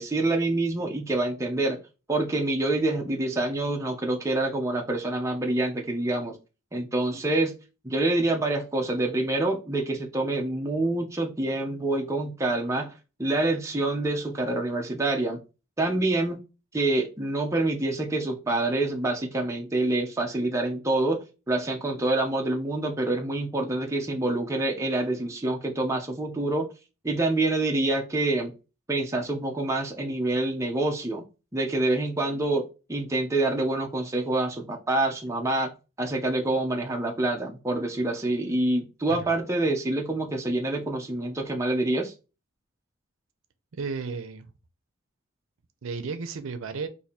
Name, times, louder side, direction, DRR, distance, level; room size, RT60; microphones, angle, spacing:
voice 1, 0.0-1.8 2.1-6.4 6.7-7.5 7.8-12.9 13.2-15.4 15.8-16.4 16.7-26.7 27.0-28.5 28.9-31.2 31.5-35.7 36.0-42.1, right 2 dB, 15° right, 0.5 m, -26 dB
voice 2, 43.7-44.5 45.8-46.9, right 4 dB, 75° right, 0.5 m, -33 dB
2.7 x 2.6 x 4.1 m
head